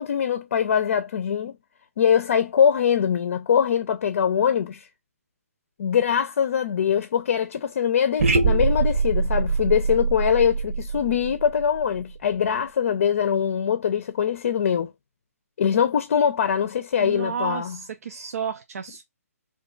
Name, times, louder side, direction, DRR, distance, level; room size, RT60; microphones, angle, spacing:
voice 1, 0.0-1.5 2.0-4.8 5.8-14.9 15.6-17.8, left 8 dB, 55° left, 0.5 m, -22 dB
sound 1, 8.2-12.3, right 4 dB, 55° right, 0.9 m, -24 dB
voice 2, 17.0-19.0, right 6 dB, 70° right, 0.5 m, -32 dB
2.6 x 2.4 x 3.8 m
hypercardioid pair, 155°, 8 cm